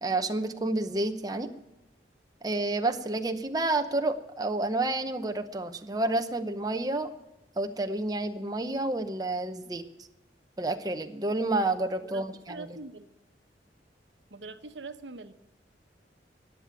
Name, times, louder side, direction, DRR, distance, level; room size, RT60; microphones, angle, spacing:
voice 1, 0.0-1.5 2.4-7.1 7.6-9.8 10.6-12.7, right 2 dB, 20° right, 6 dB, 0.8 m, -29 dB
voice 2, 12.0-13.1 14.3-15.3, right 3 dB, 85° right, 9 dB, 1.0 m, -43 dB
18.5 x 7.6 x 8.8 m, 0.93 s
head